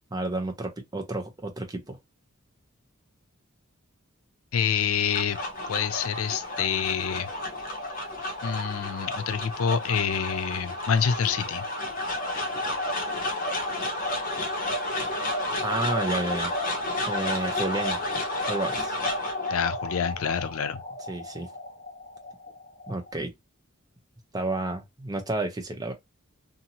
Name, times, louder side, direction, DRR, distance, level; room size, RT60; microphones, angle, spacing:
voice 1, 0.1-2.0 15.6-16.6 17.1-18.0 18.5-18.9 21.1-21.5 22.9-23.3 24.3-25.9, right 2 dB, 20° right, 0.6 m, -31 dB
voice 2, 4.5-5.4 5.7-7.3 8.4-11.7 19.5-20.8, left 7 dB, 80° left, 0.5 m, -27 dB
sound 1, 4.8-23.1, left 1 dB, 40° left, 0.9 m, -31 dB
2.8 x 2.6 x 2.7 m
head